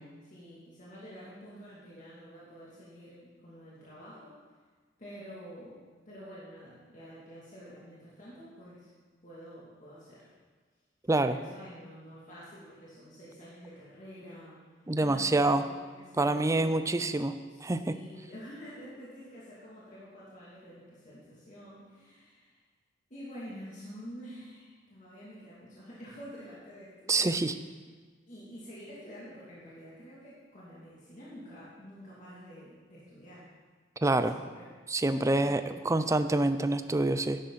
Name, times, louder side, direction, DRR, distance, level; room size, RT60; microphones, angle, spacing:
voice 1, 0.2-4.4 5.0-8.9 9.2-10.2 11.2-14.5 15.0-17.0 17.5-22.6 23.1-27.3 28.3-33.5 34.1-34.7 35.4-35.8, equal, 45° left, -8 dB, 2.7 m, -48 dB
voice 2, 14.9-15.6 16.2-17.3 17.6-17.8 27.1-27.5 34.0-34.4 34.9-37.4, right 2 dB, 15° right, 10 dB, 0.5 m, -26 dB
12.5 x 10.5 x 4.1 m, 1.5 s
head